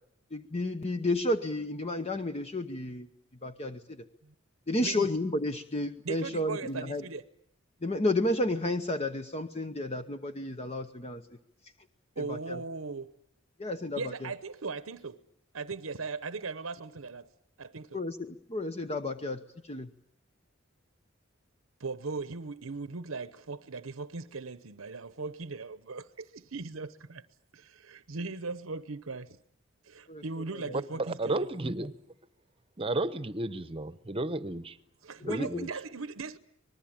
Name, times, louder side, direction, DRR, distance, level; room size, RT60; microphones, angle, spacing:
voice 1, 0.3-3.1 3.4-4.0 4.7-7.0 7.8-11.2 12.3-12.6 13.6-14.0 17.9-19.4 19.7-19.9 30.1-30.2 35.2-35.7, left 1 dB, 30° left, 0.9 m, -31 dB
voice 2, 6.0-7.3 12.2-13.1 14.0-15.2 15.5-17.3 17.6-18.0 21.8-27.2 27.5-29.4 29.8-31.5 35.0-36.4, right 4 dB, 80° right, 0.9 m, -38 dB
voice 3, 31.0-31.9 32.8-34.8 35.2-35.7, right 2 dB, 25° right, 1.0 m, -33 dB
25.5 x 20.5 x 8.8 m
head